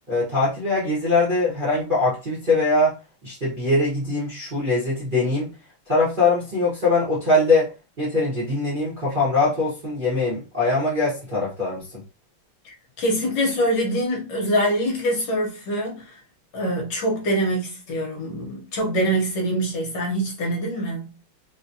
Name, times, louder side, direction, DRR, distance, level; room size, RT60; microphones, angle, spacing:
voice 1, 0.1-2.9 3.2-5.5 5.9-12.0, left 2 dB, 35° right, 0.9 m, -22 dB
voice 2, 12.6-16.2 16.5-21.2, equal, 60° left, 1.5 m, -24 dB
3.9 x 2.4 x 2.7 m
omnidirectional pair, 2.4 m